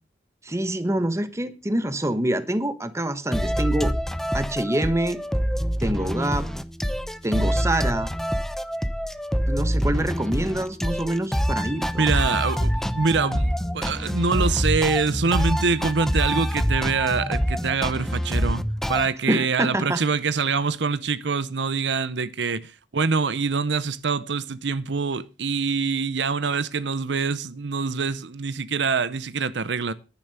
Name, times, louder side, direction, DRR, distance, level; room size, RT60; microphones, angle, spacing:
voice 1, 0.4-3.9 4.3-5.2 5.8-6.5 7.2-8.1 9.5-12.2 19.3-20.0, right 1 dB, 15° right, 1.1 m, -26 dB
sound 1, 3.3-19.1, equal, ahead, 0.7 m, -26 dB
voice 2, 12.0-29.9, right 5 dB, 75° right, 0.7 m, -25 dB
11.0 x 9.2 x 6.8 m
head